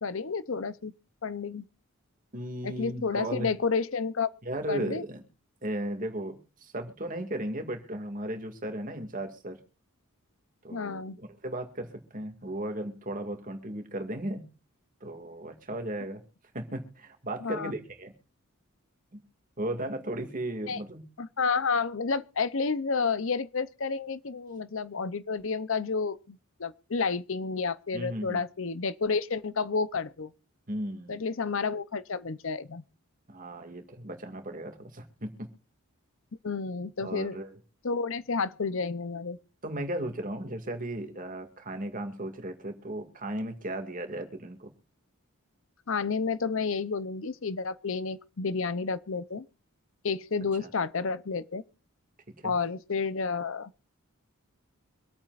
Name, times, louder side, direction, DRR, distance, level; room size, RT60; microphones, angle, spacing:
voice 1, 0.0-0.9 1.2-1.6 2.6-4.3 4.7-5.0 10.7-11.2 17.4-17.7 20.7-20.8 21.2-30.3 31.1-32.8 36.4-37.4 37.8-39.4 45.9-49.4 50.0-51.6 52.4-53.8, left 5 dB, 60° left, 0.7 m, -30 dB
voice 2, 2.3-3.5 4.4-5.2 5.6-9.6 10.6-14.4 15.0-16.2 16.5-18.1 19.1-19.2 19.6-21.0 27.9-28.4 30.7-31.2 33.3-35.5 37.0-37.5 39.6-44.7 50.6-50.7 52.4-52.5, right 1 dB, 35° right, 2.2 m, -36 dB
25.5 x 8.8 x 2.5 m
head